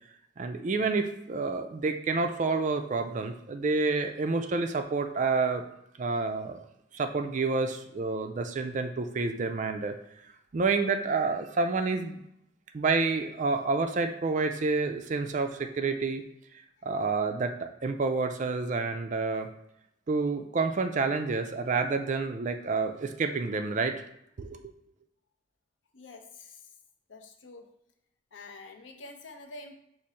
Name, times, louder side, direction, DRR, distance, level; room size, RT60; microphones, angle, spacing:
voice 1, 0.4-5.6 6.0-6.6 6.9-10.0 10.5-12.2 12.7-16.2 16.8-19.5 20.1-24.0 24.4-24.7, right 4 dB, 40° right, 7 dB, 0.4 m, -29 dB
voice 2, 25.9-26.6 27.1-27.7 28.3-29.8, left 3 dB, 75° left, 5 dB, 0.6 m, -47 dB
4.9 x 2.5 x 4.2 m, 0.78 s
head